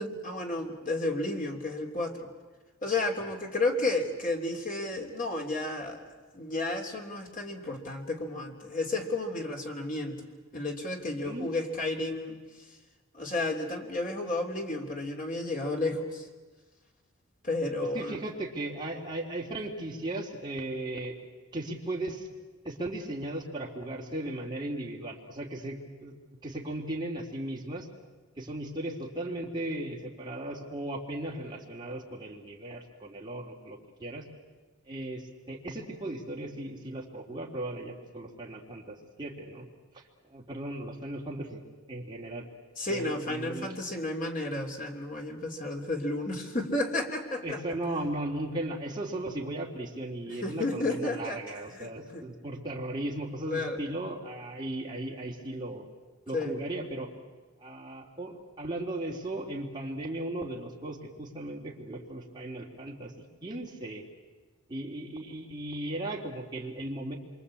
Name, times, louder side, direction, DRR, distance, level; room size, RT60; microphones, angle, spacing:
voice 1, 0.0-2.3 2.8-10.3 10.5-12.4 13.1-16.2 17.4-18.2 42.8-47.6 50.3-51.4 51.7-52.3 53.5-53.8 56.3-56.5, left 2 dB, 35° left, 3 dB, 3.0 m, -32 dB
voice 2, 11.2-11.5 17.9-21.2 21.5-22.3 22.6-26.2 26.4-27.9 28.4-34.3 34.9-39.7 39.9-40.0 40.3-41.6 41.9-42.4 42.9-43.8 47.4-55.9 56.3-57.1 57.6-64.0 64.7-67.2, right 1 dB, 20° right, -2 dB, 3.3 m, -37 dB
26.5 x 24.5 x 8.6 m, 1.3 s
head